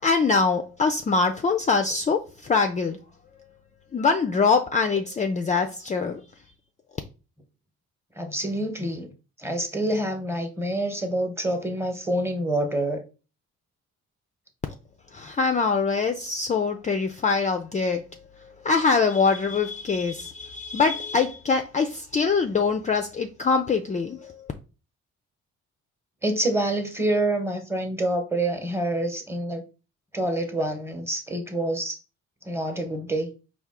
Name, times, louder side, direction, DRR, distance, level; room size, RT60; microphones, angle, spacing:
voice 1, 0.0-3.0 3.9-6.2 15.1-24.5, left 4 dB, 25° left, 0.4 m, -24 dB
voice 2, 8.2-9.1 9.4-13.0 26.2-29.6 30.1-32.0 32.4-33.3, right 1 dB, 10° right, 1.0 m, -27 dB
4.5 x 2.4 x 3.6 m
cardioid pair, 90°, 30 cm